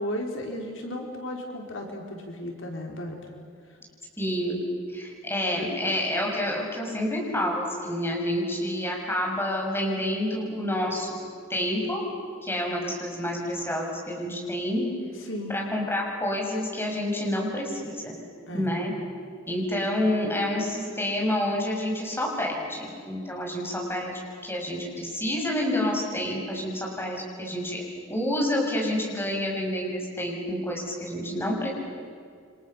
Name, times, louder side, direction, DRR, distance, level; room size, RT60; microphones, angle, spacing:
voice 1, 0.0-3.2 15.3-15.6 18.5-18.8, left 1 dB, 70° left, 1 dB, 4.4 m, -34 dB
voice 2, 4.2-4.6 4.9-11.2 11.5-12.1 12.4-14.9 15.5-18.2 18.5-18.9 19.5-27.8 28.1-31.7, left 1 dB, 10° left, -1 dB, 7.0 m, -28 dB
29.5 x 26.5 x 7.3 m, 2.2 s
head